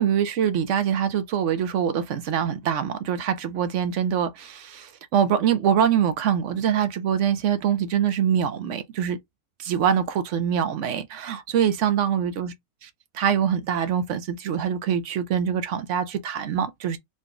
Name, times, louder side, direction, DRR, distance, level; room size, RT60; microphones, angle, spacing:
voice 1, 0.0-9.2 9.6-12.5 12.8-12.9 13.1-17.0, right 8 dB, 70° right, 1.0 m, -24 dB
3.9 x 2.2 x 3.7 m
omnidirectional pair, 1.4 m